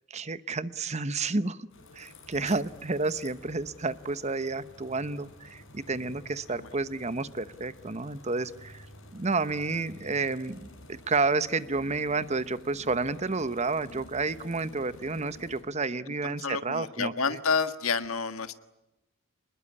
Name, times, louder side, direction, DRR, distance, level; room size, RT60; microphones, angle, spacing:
voice 1, 0.1-1.7 2.0-8.9 9.1-10.6 10.9-17.4, right 3 dB, 30° right, 14 dB, 1.0 m, -30 dB
sound 1, 1.7-15.6, left 1 dB, 65° left, 7.1 m, -51 dB
voice 2, 16.2-18.6, left 5 dB, 80° left, 10 dB, 1.6 m, -29 dB
26.5 x 21.0 x 9.8 m, 0.97 s
head